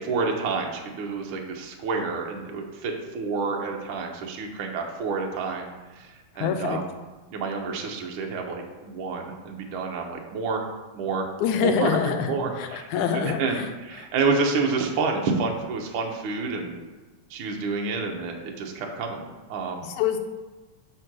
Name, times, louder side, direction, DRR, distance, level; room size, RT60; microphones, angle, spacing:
voice 1, 0.0-6.9 7.3-10.6 10.9-11.3 11.6-12.9 13.1-16.8 17.3-19.9, right 4 dB, 60° right, 1 dB, 1.4 m, -29 dB
voice 2, 6.4-6.8 11.4-13.4 20.0-20.2, left 7 dB, 80° left, 6 dB, 2.1 m, -25 dB
6.5 x 4.4 x 6.0 m, 1.3 s
omnidirectional pair, 3.4 m